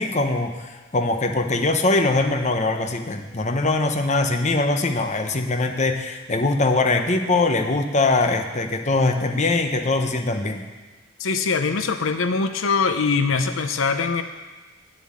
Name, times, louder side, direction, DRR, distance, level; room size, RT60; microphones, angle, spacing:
voice 1, 0.0-10.6, left 2 dB, 35° left, 5 dB, 0.8 m, -22 dB
voice 2, 11.2-14.2, left 4 dB, 70° left, 8 dB, 0.7 m, -22 dB
9.3 x 7.4 x 8.5 m, 1.3 s
head